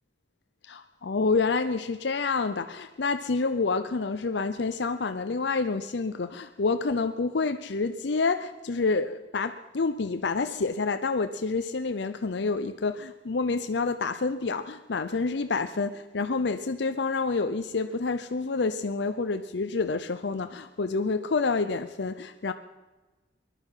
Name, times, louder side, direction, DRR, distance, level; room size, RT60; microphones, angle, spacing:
voice 1, 0.7-22.5, left 4 dB, 65° left, 10 dB, 0.6 m, -28 dB
20.5 x 12.0 x 5.6 m, 1.2 s
head